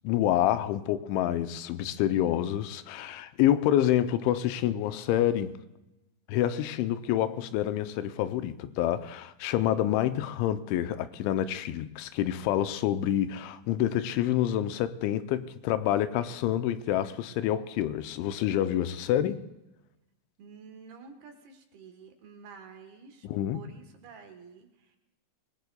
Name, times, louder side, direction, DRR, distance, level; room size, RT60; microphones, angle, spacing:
voice 1, 0.0-5.5 6.3-19.4 23.2-23.6, left 12 dB, 85° left, 3.0 m, -27 dB
voice 2, 20.4-23.3 23.5-25.0, right 5 dB, 70° right, 2.9 m, -50 dB
26.0 x 19.5 x 2.3 m
omnidirectional pair, 5.3 m